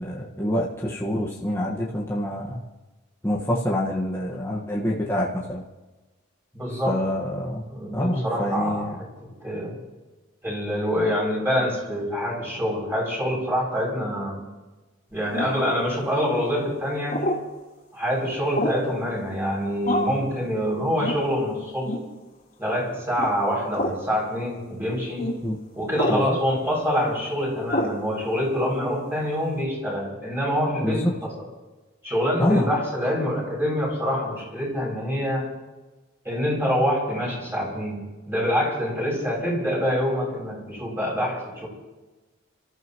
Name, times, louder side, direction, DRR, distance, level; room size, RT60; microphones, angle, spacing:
voice 1, 0.0-2.6 3.2-5.6 6.8-7.6 7.9-9.0 25.4-25.5 26.1-26.4 30.8-31.1 32.4-32.7, equal, 10° left, -4 dB, 1.6 m, -26 dB
voice 2, 6.5-7.0 7.7-9.7 10.4-14.4 15.1-17.2 17.9-21.9 22.6-25.2 25.7-31.3 32.0-35.4 36.2-38.0 38.3-41.7, equal, 10° right, -4 dB, 6.8 m, -26 dB
sound 1, 15.3-15.7 17.1-17.4 18.5-18.9 19.8-20.2 21.0-21.2 21.8-22.1 23.1-23.3 23.7-24.0 25.2-25.3 25.9-26.2 27.7-28.0, left 1 dB, 40° left, 3.6 m, -26 dB
29.5 x 14.5 x 3.1 m, 1.2 s
head